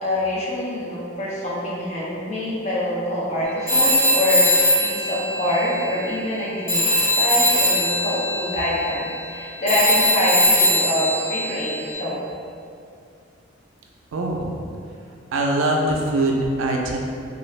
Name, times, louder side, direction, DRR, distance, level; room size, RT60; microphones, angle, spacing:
voice 1, 0.0-4.5 4.8-12.3, equal, 35° left, -7 dB, 0.7 m, -25 dB
Telephone, 3.7-6.4 6.7-11.9, left 1 dB, 15° left, 1.1 m, -21 dB
voice 2, 14.1-14.6 15.3-17.0, right 1 dB, 90° right, 0 dB, 0.4 m, -22 dB
2.5 x 2.4 x 3.1 m, 2.4 s
head